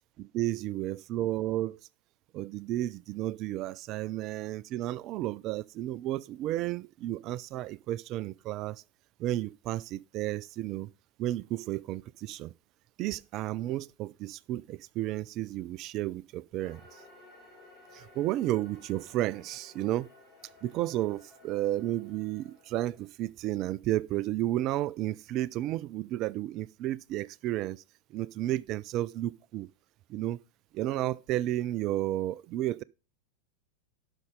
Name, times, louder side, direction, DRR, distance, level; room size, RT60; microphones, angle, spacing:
voice 1, 0.2-1.8 2.3-8.8 9.2-10.9 11.2-12.5 13.0-16.8 17.9-20.1 20.6-27.8 28.1-29.7 30.1-30.4 30.7-32.8, right 14 dB, 35° right, 0.3 m, -32 dB
sound 1, 16.6-23.1, left 2 dB, 15° left, 3.4 m, -56 dB
11.5 x 5.5 x 3.7 m
figure-of-eight pair, 90°, 0 cm